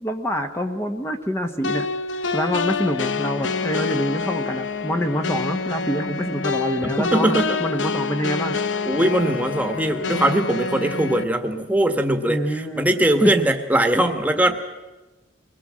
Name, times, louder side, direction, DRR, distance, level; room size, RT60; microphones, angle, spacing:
voice 1, 0.0-1.9 2.1-8.6 12.3-12.9 13.2-13.3, equal, 15° left, 6 dB, 1.2 m, -26 dB
sound 1, 1.6-11.2, left 4 dB, 85° left, 0.9 m, -27 dB
voice 2, 6.8-7.6 8.8-14.6, right 1 dB, 10° right, 6 dB, 1.5 m, -21 dB
23.5 x 19.0 x 7.6 m, 1.1 s
head